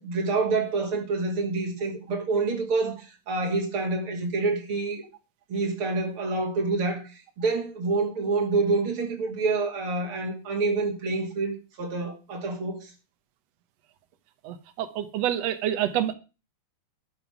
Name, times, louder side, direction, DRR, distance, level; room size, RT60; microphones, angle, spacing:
voice 1, 0.0-5.0 5.5-12.9, right 3 dB, 40° right, 3.2 m, -27 dB
voice 2, 14.4-16.1, right 11 dB, 85° right, 1.4 m, -27 dB
12.0 x 9.2 x 5.9 m
omnidirectional pair, 4.3 m